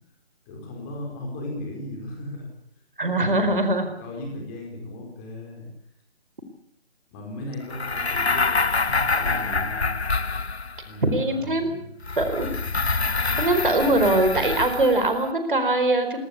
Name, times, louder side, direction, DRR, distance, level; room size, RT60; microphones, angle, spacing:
voice 1, 0.5-2.5 3.0-3.6 4.0-5.7 7.1-9.9 10.8-11.9, left 1 dB, 15° left, 1 dB, 4.7 m, -36 dB
voice 2, 3.0-3.9 11.0-11.8 12.2-12.5 13.4-16.2, right 2 dB, 55° right, 8 dB, 4.5 m, -22 dB
sound 1, 7.7-10.9 12.0-15.2, left 3 dB, 85° left, 0.9 m, -26 dB
22.0 x 18.0 x 8.3 m, 0.74 s
figure-of-eight pair, 150°, 32 cm